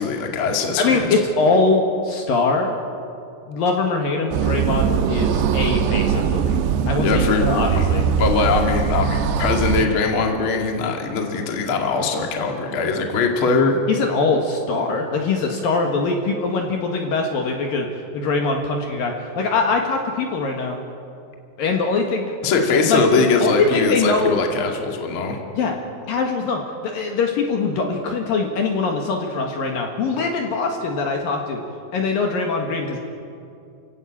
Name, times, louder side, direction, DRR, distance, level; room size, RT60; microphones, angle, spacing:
voice 1, 0.0-1.2 6.9-7.5 7.8-7.9 8.2-13.8 22.4-25.4, left 4 dB, 40° left, 2 dB, 2.2 m, -21 dB
voice 2, 0.8-2.8 3.5-8.1 13.9-17.9 18.1-20.8 21.6-22.3 22.7-24.4 25.5-25.8 26.1-31.6 31.9-33.0, left 3 dB, 60° left, 2 dB, 3.0 m, -22 dB
sound 1, 4.3-9.9, right 7 dB, 75° right, 2.9 m, -21 dB
29.0 x 16.5 x 8.6 m, 2.6 s
omnidirectional pair, 5.2 m